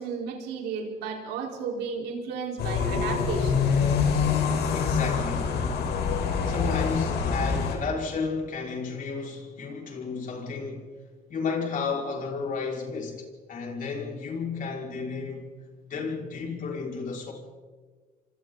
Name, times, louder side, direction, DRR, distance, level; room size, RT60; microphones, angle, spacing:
voice 1, 0.0-3.7, right 5 dB, 80° right, 4.7 m, -33 dB
sound 1, 2.6-7.8, left 6 dB, 75° left, 4.6 m, -25 dB
voice 2, 4.7-5.6 6.5-10.9 11.3-15.5 15.9-17.3, left 5 dB, 50° left, 5.8 m, -32 dB
29.0 x 25.5 x 4.1 m
cardioid pair, 110°, 17 cm